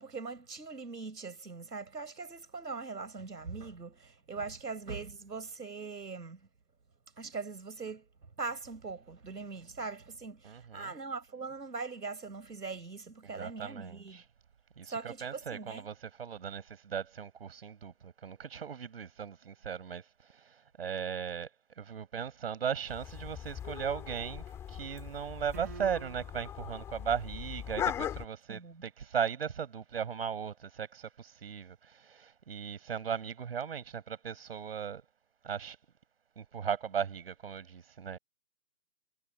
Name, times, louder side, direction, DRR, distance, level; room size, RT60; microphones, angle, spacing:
voice 1, 0.0-6.4 7.2-8.1 8.4-14.2 14.9-15.9 28.5-28.8, right 4 dB, 80° right, 5.3 m, -41 dB
voice 2, 10.4-10.9 13.2-14.2 14.8-21.5 21.8-35.0 35.4-35.8 36.4-38.2, right 7 dB, 35° right, 5.8 m, -37 dB
sound 1, 22.9-28.3, left 9 dB, 5° left, 3.3 m, -39 dB
sound 2, 25.5-26.6, right 7 dB, 10° right, 1.2 m, -47 dB
hypercardioid pair, 170°, 48 cm